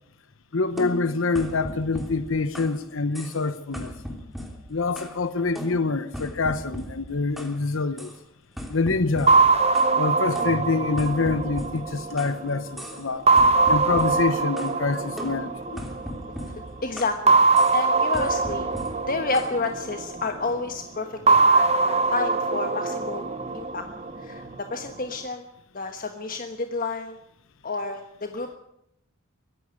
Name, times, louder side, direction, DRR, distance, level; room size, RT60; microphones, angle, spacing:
voice 1, 0.5-3.9 4.7-8.1 8.7-9.4 10.0-13.3 13.7-15.8, left 3 dB, 65° left, 0.9 m, -26 dB
sound 1, 0.8-2.8 3.2-3.5 3.7-5.2 5.6-7.6 8.0-8.2 8.6-10.0 10.4-12.4 12.8-13.1 13.4-14.8 15.2-17.2 17.6-17.8 18.1-19.6, equal, ahead, 3.0 m, -38 dB
sound 2, 9.3-12.6 13.3-16.2 17.3-20.4 21.3-24.4, right 3 dB, 30° right, 1.1 m, -22 dB
voice 2, 16.8-17.4 17.7-18.7 19.1-23.2 23.5-23.8 24.2-24.4 24.7-25.4 25.7-27.2 27.6-28.5, left 3 dB, 45° left, 1.3 m, -30 dB
23.0 x 11.5 x 9.8 m
head